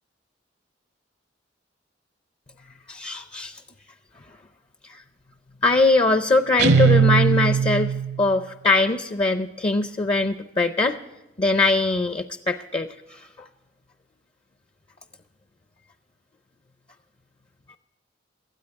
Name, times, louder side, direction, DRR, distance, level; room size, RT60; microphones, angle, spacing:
voice 1, 2.9-3.5 5.6-7.9 8.2-11.0 11.4-13.2, left 3 dB, 30° left, 9 dB, 0.5 m, -21 dB
Guitar, 6.6-8.3, right 6 dB, 65° right, 0.7 m, -19 dB
18.5 x 13.0 x 3.5 m, 1.1 s
head